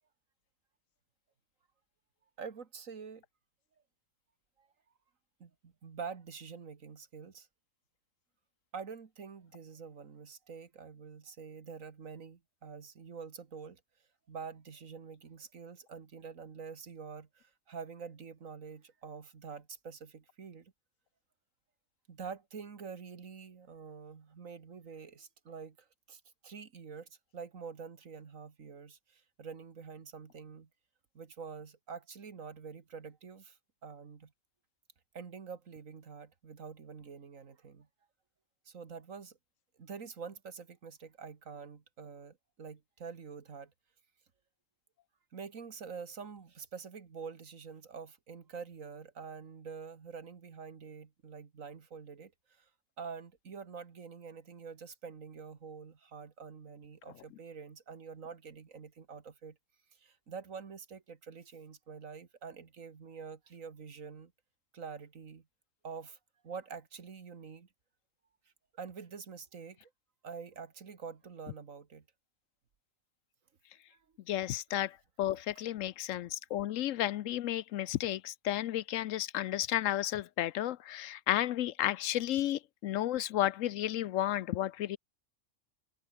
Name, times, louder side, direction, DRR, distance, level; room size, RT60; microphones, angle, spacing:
voice 1, 2.4-3.2 4.6-4.7 5.4-7.5 8.7-13.8 14.3-20.7 22.1-30.7 31.1-33.6 33.8-34.3 35.1-37.9 38.7-39.4 39.8-43.7 45.3-52.7 53.0-59.6 59.9-64.3 64.7-65.5 65.8-66.2 66.4-67.7 68.7-69.9 70.2-72.1 73.9-74.0 75.6-75.7, right 5 dB, 75° right, 2.1 m, -46 dB
voice 2, 74.3-85.0, left 13 dB, 75° left, 1.0 m, -32 dB
omnidirectional pair, 1.4 m